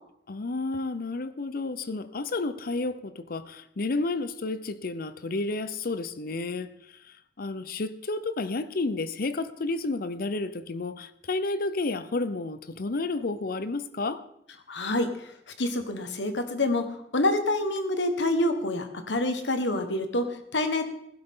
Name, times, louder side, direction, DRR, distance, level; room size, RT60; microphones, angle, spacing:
voice 1, 0.3-6.7 7.4-14.2, left 3 dB, 55° left, 0.7 m, -31 dB
voice 2, 14.7-15.1 15.6-20.8, left 1 dB, 80° left, 1.5 m, -27 dB
15.5 x 12.0 x 3.8 m
head